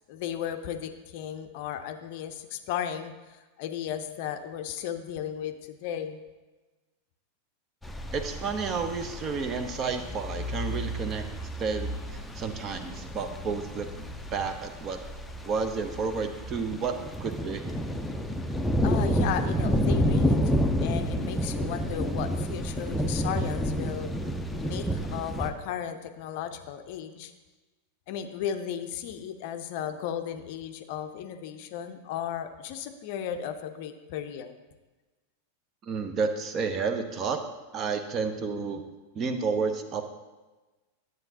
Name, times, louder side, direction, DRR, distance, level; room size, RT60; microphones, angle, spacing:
voice 1, 0.1-6.2 18.8-24.1 24.5-27.3 28.1-34.6, left 9 dB, 50° left, 8 dB, 0.5 m, -35 dB
sound 1, 7.8-25.5, equal, 5° left, 0.6 m, -30 dB
voice 2, 8.1-11.2 11.6-14.1 14.3-15.0 15.4-16.9 17.2-17.6 35.8-37.4 37.7-38.8 39.1-40.1, right 5 dB, 30° right, 8 dB, 0.7 m, -31 dB
11.0 x 7.8 x 2.8 m, 1.2 s
figure-of-eight pair, 90°, 0 cm